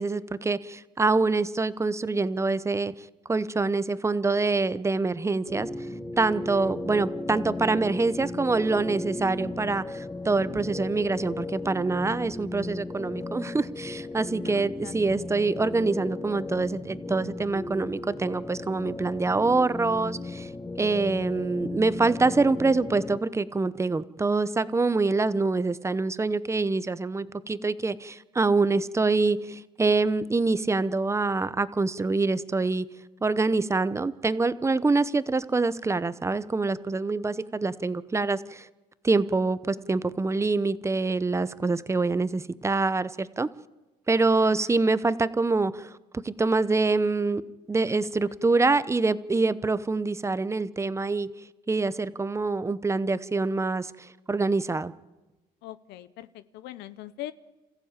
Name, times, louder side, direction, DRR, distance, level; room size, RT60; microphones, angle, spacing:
voice 1, 0.0-2.9 3.3-5.7 6.2-20.5 20.8-32.9 33.2-38.7 39.0-43.5 44.1-47.4 47.7-51.3 51.7-54.9, right 3 dB, 15° right, 15 dB, 0.8 m, -25 dB
sound 1, 5.5-23.2, left 2 dB, 15° left, 1.1 m, -36 dB
voice 2, 6.4-6.7 14.4-15.2 44.4-44.7 47.9-48.7 55.6-57.3, left 14 dB, 85° left, 14 dB, 0.9 m, -43 dB
27.0 x 15.0 x 8.9 m, 1.1 s
cardioid pair, 110°, 17 cm